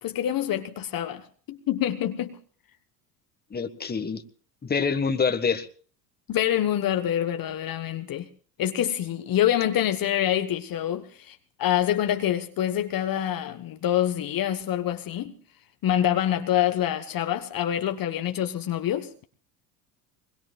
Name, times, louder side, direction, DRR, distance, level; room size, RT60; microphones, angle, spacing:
voice 1, 0.0-2.4 6.3-8.3 8.6-15.3 15.8-19.2, left 11 dB, 45° left, 1.3 m, -26 dB
voice 2, 3.5-4.2 4.6-5.7, left 5 dB, 20° left, 1.5 m, -26 dB
23.5 x 21.5 x 2.3 m
hypercardioid pair, 75°, 48 cm